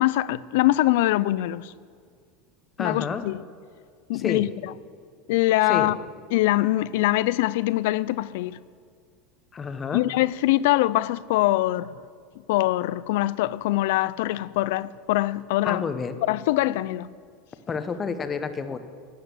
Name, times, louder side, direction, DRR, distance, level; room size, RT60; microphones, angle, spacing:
voice 1, 0.0-1.7 2.8-3.4 4.1-4.7 5.3-6.0 6.3-8.6 9.9-11.9 12.5-15.9 16.3-17.1, left 16 dB, 75° left, 0.4 m, -23 dB
voice 2, 2.8-3.2 4.1-4.5 5.7-5.9 9.5-10.0 15.6-16.2 17.7-18.8, left 5 dB, 20° left, 0.8 m, -29 dB
12.0 x 8.8 x 6.9 m
supercardioid pair, 135°, 0 cm